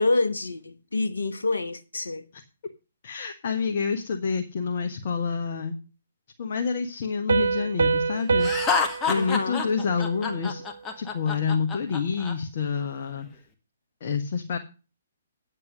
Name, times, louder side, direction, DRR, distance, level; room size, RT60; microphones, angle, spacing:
voice 1, 0.0-2.2 9.1-9.6, left 2 dB, 70° left, 1.1 m, -27 dB
voice 2, 3.0-5.8 6.4-8.5 9.1-10.6 11.0-13.3 14.0-14.6, left 5 dB, 45° left, 1.3 m, -28 dB
Piano, 7.3-10.7, right 5 dB, 65° right, 0.8 m, -27 dB
Laughter, 8.4-12.3, left 5 dB, 15° left, 1.7 m, -28 dB
9.7 x 7.5 x 6.2 m
figure-of-eight pair, 130°, 0 cm